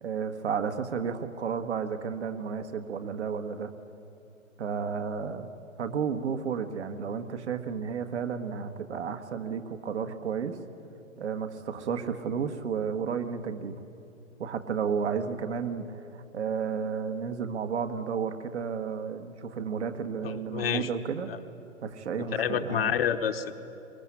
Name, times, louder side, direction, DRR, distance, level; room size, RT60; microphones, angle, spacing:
voice 1, 0.0-3.7 4.6-5.5 5.8-10.6 11.2-13.8 14.4-21.3 21.8-22.9, right 6 dB, 55° right, 7 dB, 1.7 m, -32 dB
voice 2, 20.2-20.9 21.3-21.4 22.4-23.5, left 9 dB, 45° left, 8 dB, 1.2 m, -28 dB
23.5 x 21.0 x 9.9 m, 2.7 s
figure-of-eight pair, 130°, 41 cm